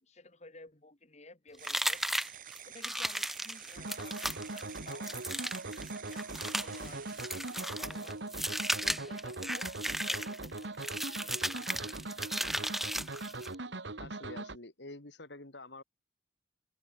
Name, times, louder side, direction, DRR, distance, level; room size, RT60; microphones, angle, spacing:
voice 1, 0.0-2.3 2.7-8.2 8.7-12.0, left 2 dB, 35° left, 2.2 m, -54 dB
sound 1, 1.6-13.6, equal, ahead, 0.7 m, -36 dB
sound 2, 1.6-9.1, right 10 dB, 45° right, 4.6 m, -50 dB
sound 3, 3.8-14.6, right 2 dB, 70° right, 1.7 m, -41 dB
voice 2, 14.0-15.8, left 2 dB, 65° left, 2.5 m, -47 dB
open air
head